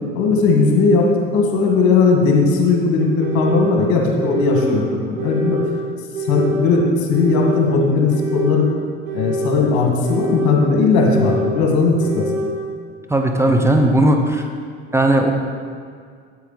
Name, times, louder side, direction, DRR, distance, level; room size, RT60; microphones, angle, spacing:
voice 1, 0.2-5.6 6.3-8.7 9.1-12.3, left 4 dB, 65° left, 1 dB, 1.9 m, -17 dB
sound 1, 1.0-1.1 2.0-2.1 3.0-3.8 4.2-4.7 5.2-5.7 6.1-6.7 7.1-7.7 8.1-8.6 9.0-9.6 10.0-10.6 11.0-11.6 12.0-12.5, equal, 80° right, 1.5 m, -25 dB
voice 2, 13.1-14.4 14.9-15.3, right 1 dB, 10° right, 3 dB, 0.9 m, -16 dB
8.4 x 8.0 x 4.1 m, 2.1 s
hypercardioid pair, 75°, 31 cm